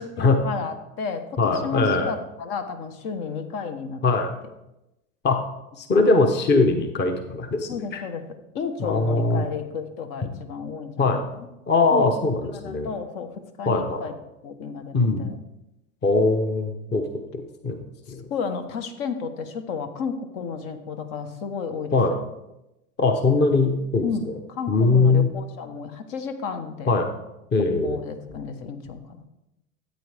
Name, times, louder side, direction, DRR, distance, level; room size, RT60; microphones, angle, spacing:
voice 1, 0.0-4.0 7.7-8.3 8.5-11.5 11.9-14.1 14.4-15.4 18.3-22.2 24.0-27.0 27.8-29.3, left 5 dB, 50° left, 7 dB, 1.3 m, -32 dB
voice 2, 1.4-2.1 4.0-4.3 5.2-5.4 5.8-8.0 8.8-9.4 11.0-11.2 11.7-12.9 13.7-14.1 14.9-15.3 16.0-17.0 17.3-17.8 18.1-18.2 21.9-22.2 23.0-24.4 24.7-25.3 26.9-27.1 27.5-28.0, left 3 dB, 25° left, 5 dB, 1.0 m, -21 dB
13.5 x 8.4 x 3.5 m, 0.92 s
hypercardioid pair, 110°, 43 cm